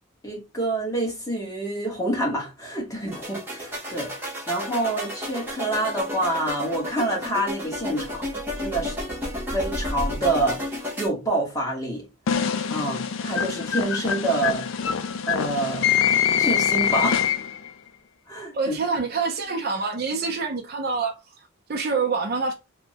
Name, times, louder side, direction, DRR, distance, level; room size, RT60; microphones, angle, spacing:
voice 1, 0.2-4.1 4.5-8.2 8.6-8.9 9.5-10.6 11.0-12.1 12.3-14.7 15.3-15.9 16.4-17.2 18.3-18.7, right 1 dB, 15° left, 1.0 m, -27 dB
sound 1, 3.1-11.1, left 1 dB, 10° right, 0.8 m, -32 dB
sound 2, 12.3-17.7, left 8 dB, 70° left, 0.3 m, -24 dB
voice 2, 18.5-22.5, right 4 dB, 45° right, 0.4 m, -26 dB
3.4 x 2.1 x 2.7 m
head